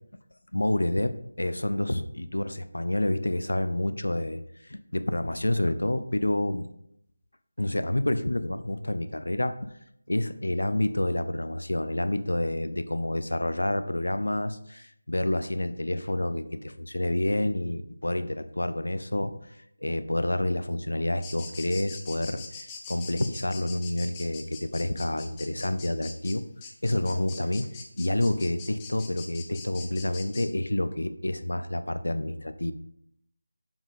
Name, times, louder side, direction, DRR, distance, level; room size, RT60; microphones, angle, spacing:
voice 1, 0.5-6.7 7.6-9.7 10.1-19.5 19.8-26.4 26.8-27.7 28.0-32.7, left 1 dB, 75° left, 12 dB, 0.6 m, -28 dB
sound 1, 21.2-30.5, left 5 dB, 15° left, 0.6 m, -43 dB
7.2 x 5.2 x 3.6 m, 0.73 s
figure-of-eight pair, 165°, 0 cm